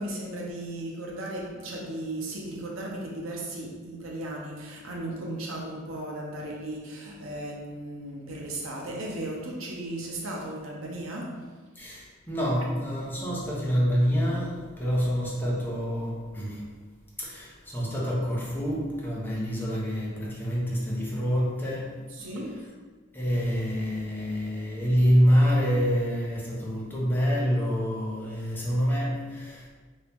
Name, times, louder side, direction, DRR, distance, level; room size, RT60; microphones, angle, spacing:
voice 1, 0.0-11.5 22.1-22.7, right 1 dB, 80° right, -2 dB, 0.7 m, -36 dB
voice 2, 11.8-16.6 17.2-22.0 23.1-29.7, equal, 10° left, -5 dB, 0.7 m, -26 dB
3.0 x 2.7 x 3.4 m, 1.4 s
head